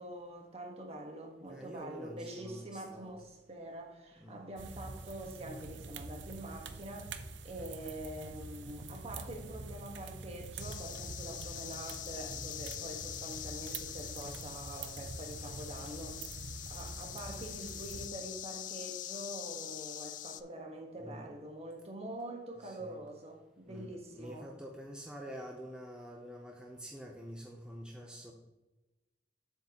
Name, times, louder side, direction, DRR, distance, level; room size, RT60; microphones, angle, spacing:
voice 1, 0.0-7.1 7.4-16.3 16.7-24.5, right 1 dB, 35° right, 1.4 m, -45 dB
voice 2, 1.5-3.1 4.2-4.5 21.0-21.3 22.6-23.0 23.7-28.3, equal, 5° right, 0.6 m, -47 dB
sound 1, 4.6-18.1, right 3 dB, 90° right, 0.6 m, -46 dB
sound 2, 10.6-20.4, left 13 dB, 45° left, 0.3 m, -44 dB
8.0 x 6.5 x 2.9 m
head